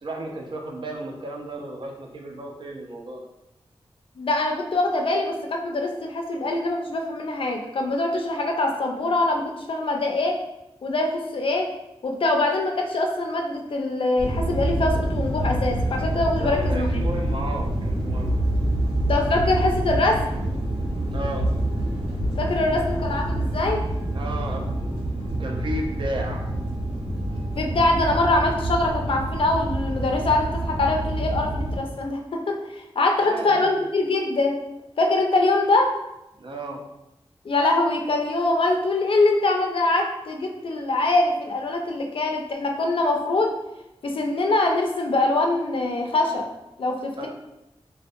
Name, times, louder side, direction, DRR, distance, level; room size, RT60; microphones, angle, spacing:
voice 1, 0.0-3.2 16.4-18.3 21.1-21.5 22.6-22.9 24.1-25.0 25.4-26.4 33.2-33.8 36.4-36.8 47.2-47.3, right 1 dB, 55° right, 0 dB, 0.4 m, -33 dB
voice 2, 4.2-10.4 10.8-11.7 12.0-17.0 19.0-20.2 22.4-23.8 27.6-34.6 35.0-36.0 37.4-43.5 44.0-46.5 46.8-47.3, left 2 dB, 60° left, 2 dB, 0.4 m, -23 dB
sound 1, 14.2-31.8, right 1 dB, 80° right, 1.1 m, -26 dB
2.5 x 2.1 x 2.5 m, 0.91 s
wide cardioid pair, 75°, 10 cm